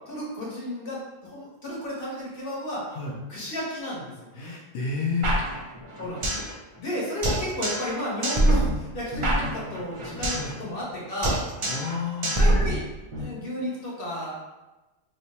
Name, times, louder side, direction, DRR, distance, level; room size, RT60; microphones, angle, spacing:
voice 1, 0.1-2.8 3.3-4.5 6.0-6.2 6.8-11.4 12.3-12.8 13.2-14.3, equal, 50° left, -5 dB, 1.1 m, -33 dB
voice 2, 4.3-5.3 10.3-10.5 11.6-12.4, left 5 dB, 65° left, -3 dB, 0.6 m, -30 dB
sound 1, 5.2-6.5 6.8-6.9 7.2-7.9 8.2-10.5 10.8-11.0 11.2-11.9 12.2-13.2, right 1 dB, 50° right, 0.3 m, -25 dB
2.9 x 2.1 x 4.0 m, 1.1 s
omnidirectional pair, 1.3 m